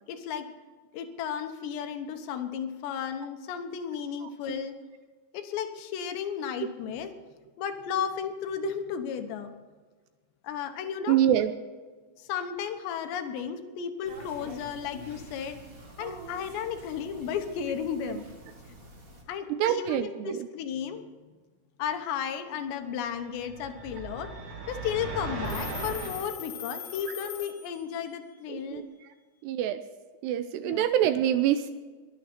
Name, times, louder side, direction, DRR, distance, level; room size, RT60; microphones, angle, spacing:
voice 1, 0.1-0.5 0.9-4.7 5.3-7.1 7.6-9.5 10.4-11.2 12.2-15.6 16.0-18.2 18.7-18.8 19.3-21.1 21.8-24.3 24.7-28.8 30.6-30.8, left 8 dB, 75° left, 7 dB, 3.2 m, -34 dB
voice 2, 4.2-4.7 8.6-8.7 11.1-11.5 19.5-20.5 28.5-29.1 29.4-29.8 30.2-31.7, right 11 dB, 85° right, 10 dB, 2.4 m, -26 dB
sound 1, 14.0-19.2, right 2 dB, 30° right, 1.7 m, -47 dB
sound 2, 23.3-26.3, right 2 dB, 55° right, 3.1 m, -37 dB
Telephone, 25.4-28.2, left 8 dB, 60° left, 4.2 m, -41 dB
22.0 x 9.6 x 4.4 m, 1.4 s
omnidirectional pair, 5.4 m